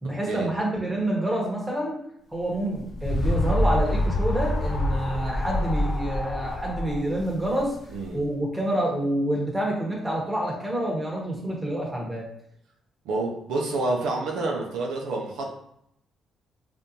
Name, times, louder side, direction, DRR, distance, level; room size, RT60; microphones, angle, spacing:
voice 1, 0.0-2.0 2.3-7.7 8.1-12.2, right 1 dB, 10° right, -3 dB, 1.1 m, -27 dB
sound 1, 2.5-8.1, left 1 dB, 45° left, 0.5 m, -26 dB
voice 2, 13.0-15.5, right 2 dB, 90° right, 0 dB, 0.6 m, -28 dB
3.6 x 2.6 x 2.8 m, 0.74 s
cardioid pair, 90°, 0 cm